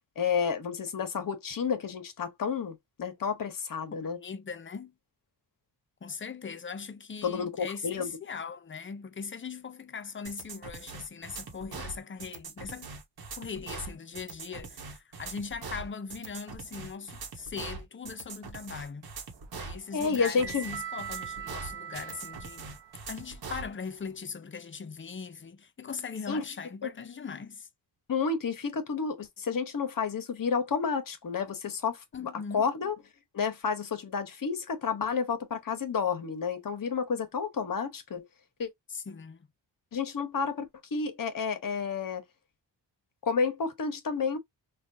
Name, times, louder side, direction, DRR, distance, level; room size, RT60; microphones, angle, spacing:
voice 1, 0.2-4.2 7.2-8.1 19.9-20.7 26.3-26.4 26.8-26.9 28.1-32.9 33.3-38.3 38.6-38.7 39.9-42.2 43.2-44.4, left 5 dB, 50° left, 1.0 m, -30 dB
voice 2, 4.2-4.9 6.0-13.0 13.4-19.1 19.5-22.7 23.1-27.7 32.1-32.7 38.9-39.5, left 5 dB, 30° left, 0.6 m, -40 dB
sound 1, 10.2-23.7, right 4 dB, 55° right, 1.1 m, -42 dB
sound 2, 19.3-24.2, right 9 dB, 75° right, 0.8 m, -43 dB
3.2 x 2.3 x 2.6 m
cardioid pair, 65°, 43 cm